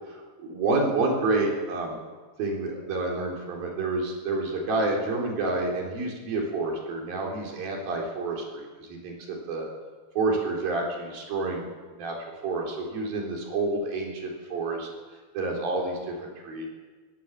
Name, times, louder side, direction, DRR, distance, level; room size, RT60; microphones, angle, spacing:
voice 1, 0.4-2.0 2.4-9.7 10.2-12.2 12.4-14.9 15.3-16.7, right 3 dB, 70° right, 0 dB, 5.7 m, -29 dB
21.5 x 16.5 x 7.5 m, 1.4 s
omnidirectional pair, 4.3 m